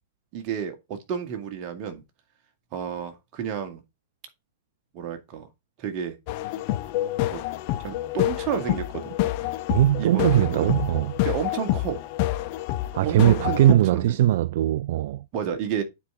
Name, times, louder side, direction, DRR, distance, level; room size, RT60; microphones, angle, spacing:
voice 1, 0.3-2.0 2.7-3.8 4.9-5.5 5.8-6.2 7.3-7.4 7.8-9.1 10.0-10.7 11.2-12.0 13.0-14.2 15.3-15.8, right 8 dB, 40° right, 2.0 m, -31 dB
sound 1, 6.3-13.7, left 15 dB, 45° left, 1.0 m, -28 dB
voice 2, 9.7-11.1 12.9-15.2, right 13 dB, 55° right, 0.3 m, -20 dB
9.0 x 4.9 x 3.8 m
figure-of-eight pair, 105°, 0 cm